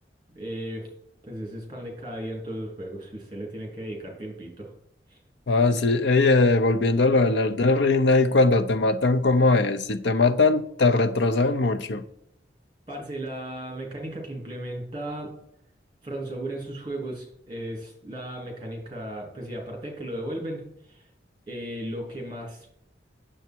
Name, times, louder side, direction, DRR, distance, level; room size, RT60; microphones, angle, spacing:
voice 1, 0.3-0.9 1.2-4.7 5.1-5.2 12.9-15.3 16.0-21.1 21.5-22.7, right 1 dB, 25° right, 2.9 m, -35 dB
voice 2, 5.5-12.0, left 3 dB, 80° left, 0.7 m, -20 dB
9.3 x 7.3 x 4.5 m
head